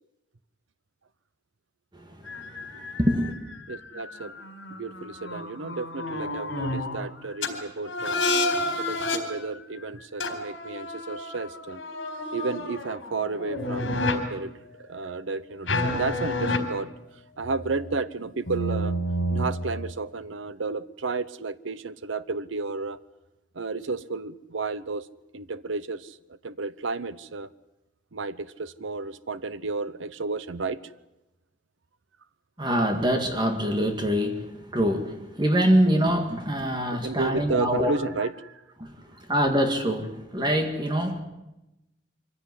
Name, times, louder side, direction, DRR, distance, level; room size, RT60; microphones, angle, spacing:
voice 1, 1.9-3.3 32.6-37.9 38.8-41.2, equal, 20° right, 2.0 m, -25 dB
sound 1, 2.3-7.1 7.4-7.5 7.8-9.2 10.2-14.2 15.7-16.6 17.4-18.0 18.5-19.9, left 1 dB, 70° left, 4.1 m, -30 dB
voice 2, 3.7-4.4 4.7-8.2 8.8-11.8 12.3-16.9 17.4-19.0 19.3-23.0 23.5-25.1 25.3-27.5 28.1-30.9 37.0-38.6, right 3 dB, 70° right, 0.8 m, -32 dB
24.0 x 16.0 x 9.7 m
head